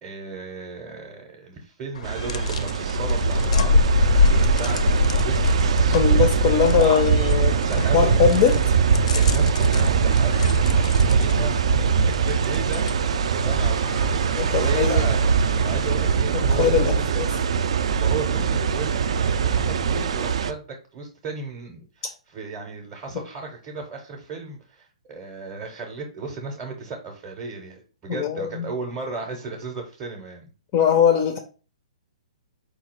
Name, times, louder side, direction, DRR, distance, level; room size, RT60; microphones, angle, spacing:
voice 1, 0.0-3.8 4.3-7.0 7.4-8.1 9.1-10.5 11.2-11.9 12.2-12.9 13.3-15.3 15.6-16.9 18.0-20.6 20.9-30.5, right 3 dB, 15° right, 1 dB, 0.7 m, -35 dB
sound 1, 1.9-16.1, left 3 dB, 70° left, 0.5 m, -26 dB
sound 2, 2.0-20.5, right 6 dB, 55° right, 0.4 m, -22 dB
voice 2, 5.9-7.6 7.9-8.6 14.4-15.0 16.3-17.3 28.1-28.7 30.7-31.4, left 8 dB, 25° left, 7 dB, 0.4 m, -21 dB
4.7 x 2.3 x 4.3 m, 0.35 s
hypercardioid pair, 170°, 4 cm